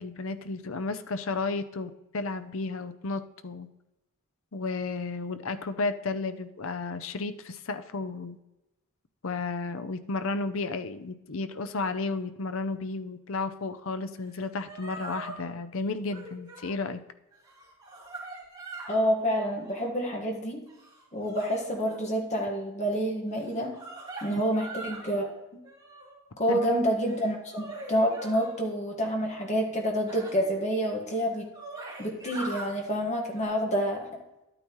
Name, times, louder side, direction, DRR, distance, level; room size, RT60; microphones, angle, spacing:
voice 1, 0.0-3.7 4.5-8.4 9.2-17.0 24.3-24.4 26.5-26.6, left 3 dB, 65° left, 11 dB, 0.6 m, -33 dB
sound 1, 14.3-14.4 14.7-15.4 16.0-16.8 17.3-19.0 19.5-20.0 20.7-22.0 23.4-25.2 25.6-26.2 26.9-28.6 30.1-30.3 31.0-31.1 31.3-32.7 33.3-33.4, right 2 dB, 20° right, 3.0 m, -42 dB
voice 2, 18.9-20.6 21.1-23.8 24.2-25.3 26.4-31.5 32.0-34.1, equal, 30° left, 1 dB, 1.6 m, -28 dB
11.5 x 8.9 x 3.1 m, 0.96 s
head